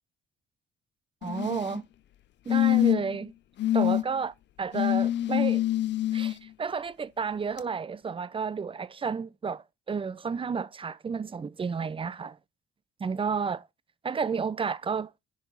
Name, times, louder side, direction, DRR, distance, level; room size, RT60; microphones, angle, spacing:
sound 1, 1.2-1.8 2.5-3.2 3.6-4.0 4.7-6.3 7.6-7.7, left 13 dB, 65° left, 0.6 m, -25 dB
voice 1, 1.2-1.8 2.5-3.3 3.7-5.6 6.1-12.4 13.0-13.7 14.0-15.1, right 5 dB, 25° right, 0.6 m, -31 dB
10.5 x 4.6 x 4.0 m
cardioid pair, 90°, 20 cm